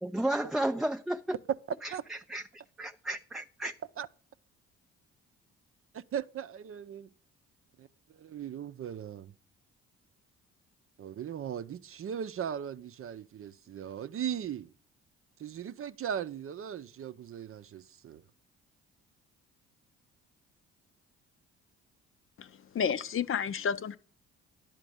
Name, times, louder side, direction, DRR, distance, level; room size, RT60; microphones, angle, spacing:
voice 1, 0.0-1.2 1.8-3.7, right 1 dB, ahead, 0.4 m, -33 dB
voice 2, 5.9-7.1 7.8-9.3 11.0-14.7 15.4-18.2, right 9 dB, 45° right, 0.6 m, -38 dB
voice 3, 22.7-24.0, left 7 dB, 45° left, 0.6 m, -30 dB
10.5 x 4.5 x 7.8 m
supercardioid pair, 55°, 31 cm